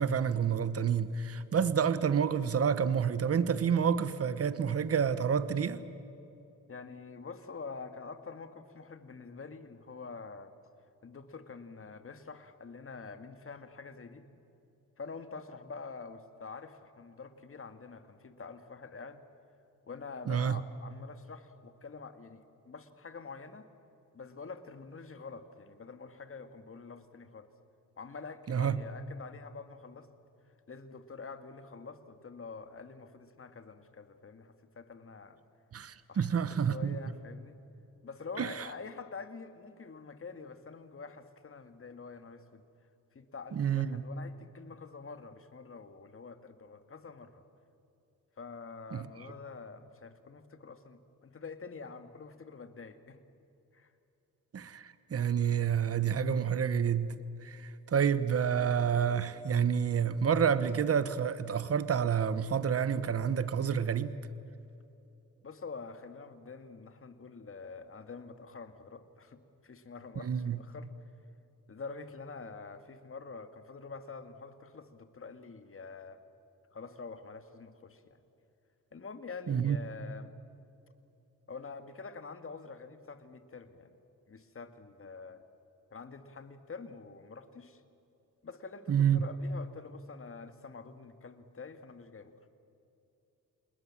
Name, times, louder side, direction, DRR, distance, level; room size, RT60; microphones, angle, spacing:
voice 1, 0.0-5.8 20.3-20.6 28.5-28.8 35.7-37.0 38.4-38.7 43.5-44.0 48.9-49.1 54.5-57.2 57.4-64.2 70.2-70.6 79.5-79.8 88.9-89.2, right 7 dB, 45° right, 1.2 m, -29 dB
voice 2, 6.7-10.5 11.0-14.3 15.0-19.2 19.9-23.7 24.1-27.5 28.0-30.1 30.7-35.4 36.1-37.6 38.0-42.6 43.1-47.4 48.4-53.2 53.7-53.9 57.6-57.7 65.4-70.9 71.7-76.2 76.7-78.2 78.9-80.3 81.5-84.0 84.3-85.4 85.9-87.8 88.4-92.3, left 4 dB, 40° left, 2.1 m, -46 dB
27.5 x 20.5 x 7.6 m
cardioid pair, 70°, 33 cm